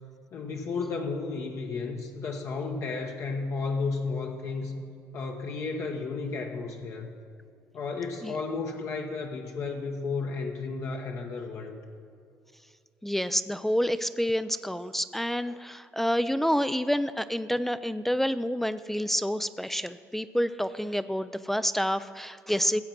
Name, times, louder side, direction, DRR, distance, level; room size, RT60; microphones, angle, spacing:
voice 1, 0.3-4.8 5.1-7.1 7.7-11.8, left 4 dB, 55° left, 2 dB, 1.0 m, -33 dB
voice 2, 13.0-22.8, equal, 5° left, 13 dB, 0.3 m, -28 dB
15.5 x 7.6 x 5.9 m, 2.4 s
cardioid pair, 105°, 6 cm